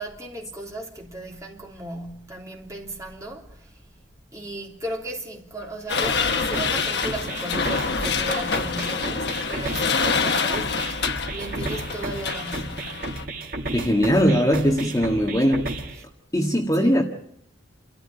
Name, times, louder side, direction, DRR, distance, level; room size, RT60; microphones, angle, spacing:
voice 1, 0.0-3.8 4.3-10.7 11.3-12.9 16.8-17.0, right 1 dB, 15° right, 3.3 m, -35 dB
sound 1, 5.9-13.2, left 5 dB, 60° left, 1.0 m, -26 dB
sound 2, 6.0-16.0, right 2 dB, 45° right, 2.1 m, -33 dB
voice 2, 13.7-15.7 16.3-17.0, equal, 15° left, 1.7 m, -20 dB
29.0 x 14.0 x 9.0 m
head